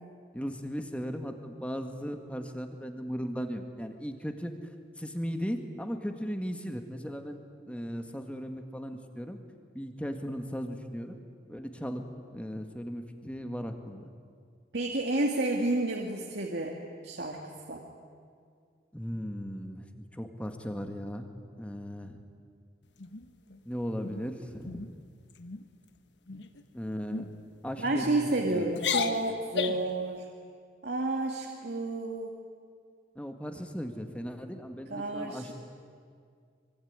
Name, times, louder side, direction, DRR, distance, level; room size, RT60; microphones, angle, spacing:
voice 1, 0.3-4.5 5.0-9.4 9.7-11.2 11.5-12.0 12.3-14.1 18.9-21.3 21.6-22.2 23.7-24.8 26.7-27.2 27.6-28.7 33.2-35.5, equal, 5° left, 6 dB, 1.8 m, -37 dB
voice 2, 14.7-16.7 17.0-17.4 17.7-17.8 27.8-30.2 30.8-32.4 34.9-35.5, right 2 dB, 65° right, 0 dB, 2.2 m, -30 dB
sound 1, 23.0-23.6 24.0-24.3 24.6-24.9 25.3-25.6 26.3-26.6 27.1-27.3 28.0-28.4 28.7-29.9, left 6 dB, 80° left, 1.4 m, -34 dB
24.5 x 24.0 x 9.7 m, 2.2 s
head